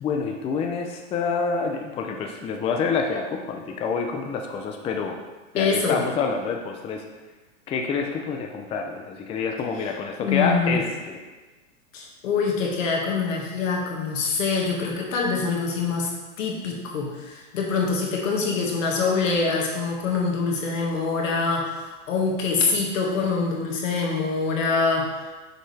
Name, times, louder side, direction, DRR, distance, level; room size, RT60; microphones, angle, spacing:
voice 1, 0.0-5.2 5.5-7.0 7.7-11.2, left 5 dB, 15° left, 3 dB, 0.4 m, -27 dB
voice 2, 5.5-6.0 10.2-10.8 11.9-16.1 16.4-25.3, left 4 dB, 80° left, -1 dB, 1.9 m, -25 dB
6.5 x 6.5 x 3.3 m, 1.2 s
hypercardioid pair, 130°, 38 cm